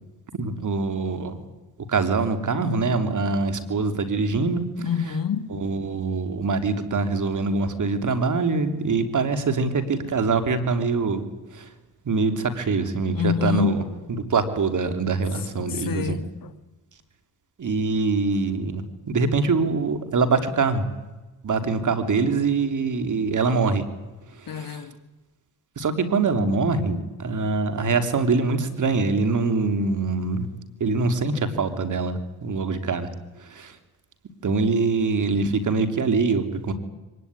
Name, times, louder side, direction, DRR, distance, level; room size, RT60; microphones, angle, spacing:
voice 1, 0.3-1.4 1.9-4.6 5.5-11.2 11.5-11.7 12.0-13.8 14.1-16.2 17.6-20.8 21.4-23.8 24.3-24.8 25.8-30.5 30.8-33.1 33.4-33.7 34.4-36.7, right 4 dB, 50° right, 3.2 m, -24 dB
voice 2, 4.8-5.5 13.1-13.7 15.7-16.5 24.5-25.0, left 8 dB, 55° left, 1.8 m, -27 dB
24.0 x 19.0 x 9.8 m
cardioid pair, 80°, 39 cm